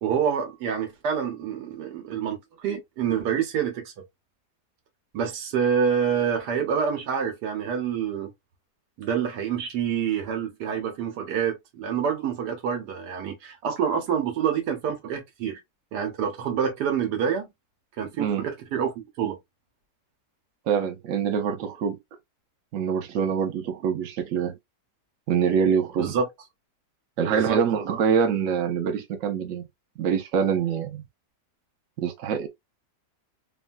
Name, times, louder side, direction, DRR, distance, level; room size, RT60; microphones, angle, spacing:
voice 1, 0.0-3.9 5.1-8.3 9.0-15.6 15.9-17.5 18.0-19.4 26.0-26.3 27.3-27.6, right 7 dB, 80° right, 1.4 m, -27 dB
voice 2, 18.2-18.5 20.7-22.0 22.7-24.5 25.3-26.2 27.2-29.6 30.0-31.0 32.0-32.5, right 7 dB, 60° right, 1.0 m, -25 dB
3.1 x 2.3 x 2.5 m
omnidirectional pair, 1.8 m